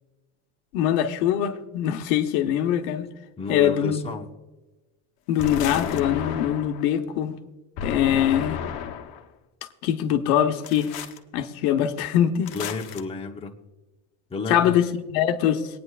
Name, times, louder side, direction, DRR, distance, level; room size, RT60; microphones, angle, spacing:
voice 1, 0.7-3.1 3.5-4.1 5.3-7.4 7.8-8.6 9.8-10.9 11.3-12.5 14.5-15.7, left 10 dB, 85° left, 1.1 m, -23 dB
voice 2, 3.4-4.3 12.5-13.5 14.3-14.7, left 4 dB, 15° left, 1.0 m, -31 dB
sound 1, 5.4-6.9 7.8-9.2 10.6-11.2 12.5-13.0, left 8 dB, 55° left, 1.1 m, -32 dB
23.0 x 9.6 x 2.4 m
cardioid pair, 140°, 42 cm